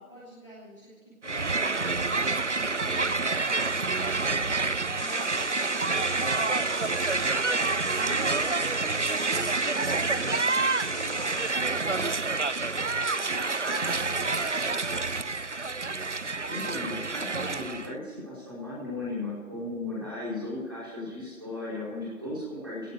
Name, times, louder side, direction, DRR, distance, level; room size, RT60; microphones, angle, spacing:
voice 1, 0.0-7.3 8.0-14.9, equal, 20° left, -9 dB, 2.8 m, -47 dB
Crowd, 1.2-17.9, right 3 dB, 55° right, 0.5 m, -28 dB
sound 1, 5.0-11.5, left 3 dB, 65° left, 1.4 m, -42 dB
voice 2, 16.4-22.9, left 2 dB, 15° right, -9 dB, 5.1 m, -36 dB
17.5 x 8.4 x 7.6 m, 1.4 s
figure-of-eight pair, 180°, 43 cm